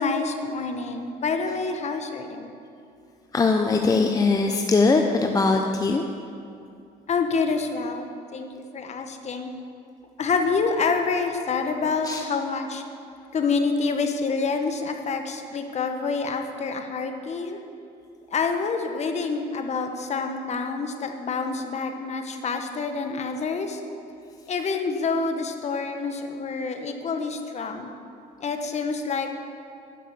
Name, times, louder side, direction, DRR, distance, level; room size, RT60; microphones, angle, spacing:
voice 1, 0.0-2.5 7.1-9.5 10.2-12.8 13.3-17.6 18.3-23.8 24.5-27.9 28.4-29.3, left 4 dB, 40° left, 5 dB, 1.0 m, -27 dB
voice 2, 3.3-6.0 12.0-12.2, left 3 dB, 20° left, 4 dB, 0.5 m, -21 dB
10.5 x 5.4 x 6.8 m, 2.5 s
cardioid pair, 110°, 17 cm